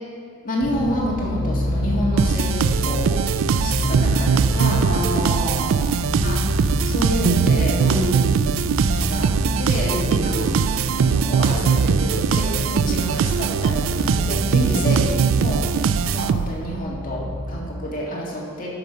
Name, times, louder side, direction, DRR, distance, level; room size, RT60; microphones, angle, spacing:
voice 1, 0.4-3.1 3.6-5.2 6.2-6.4 6.8-8.0 8.8-9.3 9.6-10.5 10.8-18.7, equal, 45° left, -4 dB, 1.8 m, -28 dB
sound 1, 0.6-17.6, left 1 dB, 75° right, 1.1 m, -28 dB
sound 2, 2.2-16.7, right 6 dB, 90° right, 0.3 m, -21 dB
voice 2, 4.8-6.0 7.8-8.5 9.8-10.6 14.6-15.0, left 1 dB, 35° right, -6 dB, 2.7 m, -29 dB
12.5 x 5.5 x 5.6 m, 2.2 s
head